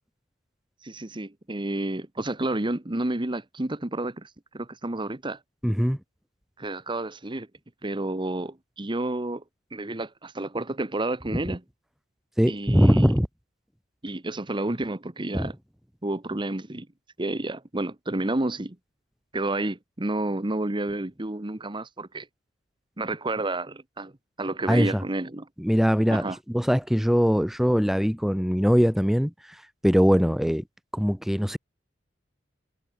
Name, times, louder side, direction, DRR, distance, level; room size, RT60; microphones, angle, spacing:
voice 1, 0.8-4.3 4.5-5.4 6.6-7.5 7.8-9.4 9.7-11.6 12.4-13.1 14.0-15.5 16.0-16.9 17.2-18.8 19.3-22.3 23.0-24.1 24.4-25.4 26.1-26.4, right 2 dB, 25° right, 1.2 m, -30 dB
voice 2, 5.6-6.0 11.3-11.4 12.4-13.3 15.3-15.5 24.7-25.0 25.6-29.6 29.8-30.6 30.9-31.6, equal, ahead, 1.2 m, -22 dB
head